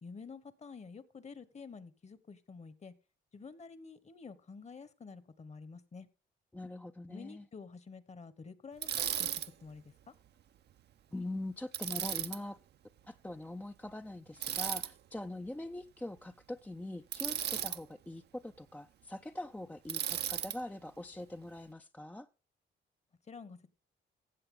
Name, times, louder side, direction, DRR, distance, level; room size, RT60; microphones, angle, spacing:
voice 1, 0.0-2.9 3.3-6.1 7.1-9.3 9.6-9.9 23.3-23.7, left 5 dB, 35° left, 1.1 m, -49 dB
voice 2, 6.5-7.5 11.1-12.6 13.1-22.3, left 1 dB, 10° left, 0.4 m, -43 dB
Bicycle, 8.8-9.5 11.7-12.4 14.4-14.9 17.1-17.8 19.9-20.6, right 10 dB, 60° right, 0.6 m, -35 dB
14.5 x 7.8 x 3.8 m
cardioid pair, 90°, 20 cm